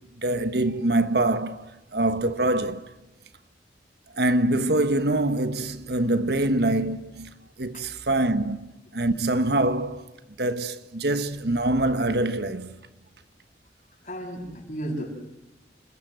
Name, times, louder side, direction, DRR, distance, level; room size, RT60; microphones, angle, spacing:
voice 1, 0.2-2.8 4.1-10.0 10.4-12.7, right 2 dB, 65° right, 1.3 m, -25 dB
voice 2, 14.0-15.1, right 1 dB, 40° left, 7.8 m, -33 dB
29.0 x 21.0 x 7.9 m
head